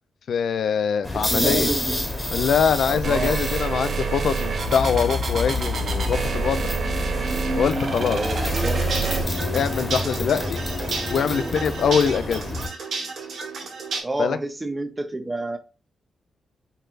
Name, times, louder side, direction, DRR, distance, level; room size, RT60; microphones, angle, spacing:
voice 1, 0.3-1.7 2.3-6.6 7.5-8.2 9.5-10.6 11.1-12.4 14.2-14.4, left 7 dB, 75° left, 0.4 m, -23 dB
sound 1, 1.0-12.7, left 1 dB, 10° left, 1.0 m, -29 dB
voice 2, 1.1-2.0 2.9-3.4 8.0-8.9 14.0-15.6, right 2 dB, 20° right, 0.6 m, -28 dB
sound 2, 3.0-9.2, right 3 dB, 55° right, 0.8 m, -27 dB
sound 3, 8.4-14.0, right 4 dB, 80° right, 1.4 m, -33 dB
4.4 x 3.2 x 2.5 m
cardioid pair, 105°, 0 cm